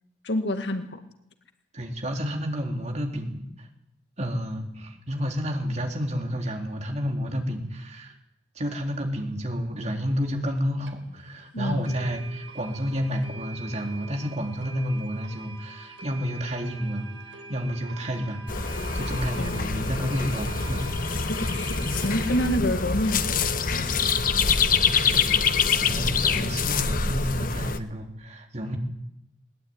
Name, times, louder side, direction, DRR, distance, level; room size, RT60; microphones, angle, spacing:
voice 1, 0.2-1.0 11.5-11.9 19.4-19.7 21.2-24.1 26.3-26.5, left 1 dB, 65° left, 7 dB, 2.0 m, -29 dB
voice 2, 1.7-3.7 4.2-8.2 8.6-21.2 24.8-28.8, equal, 35° right, 3 dB, 3.7 m, -30 dB
sound 1, 10.6-10.7 10.9-11.0 11.4-11.5 11.8-22.6, right 4 dB, 70° right, 3.6 m, -44 dB
sound 2, 18.5-27.8, left 5 dB, 45° left, 1.3 m, -25 dB
20.5 x 20.0 x 9.6 m, 0.80 s
head